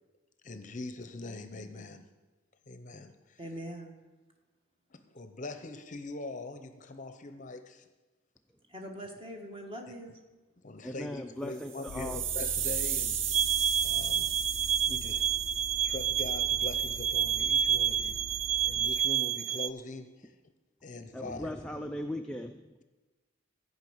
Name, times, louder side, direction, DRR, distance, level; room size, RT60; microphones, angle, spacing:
voice 1, 0.4-2.1 2.7-3.4 4.9-7.9 10.6-13.3 13.8-14.3 14.9-15.3 15.8-18.3 18.6-20.3 20.8-21.5, left 2 dB, 40° left, 0.7 m, -42 dB
voice 2, 3.4-4.0 8.7-10.2, equal, 25° right, 1.5 m, -42 dB
voice 3, 10.8-12.2 21.1-22.8, left 1 dB, 5° left, 0.4 m, -38 dB
sound 1, 11.6-15.8, right 9 dB, 70° right, 0.8 m, -35 dB
Vehicle, 11.9-19.2, left 4 dB, 75° left, 0.4 m, -44 dB
sound 2, 13.3-19.7, right 9 dB, 90° right, 0.4 m, -29 dB
13.5 x 5.5 x 7.9 m
head